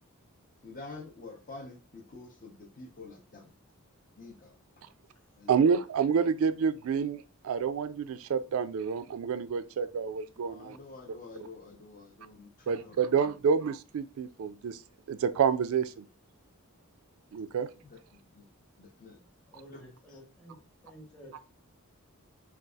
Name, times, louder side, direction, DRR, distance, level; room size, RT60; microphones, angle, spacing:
voice 1, 0.6-3.5 4.2-4.5 5.4-5.5 10.4-13.4 17.7-18.5 18.8-19.2 19.7-19.8, left 3 dB, 40° left, 0.6 m, -48 dB
voice 2, 5.5-10.8 12.7-14.8 15.1-16.0 17.3-17.7, right 6 dB, 70° right, 0.3 m, -28 dB
voice 3, 19.1-21.4, equal, 5° left, 1.0 m, -52 dB
3.9 x 2.4 x 2.3 m
head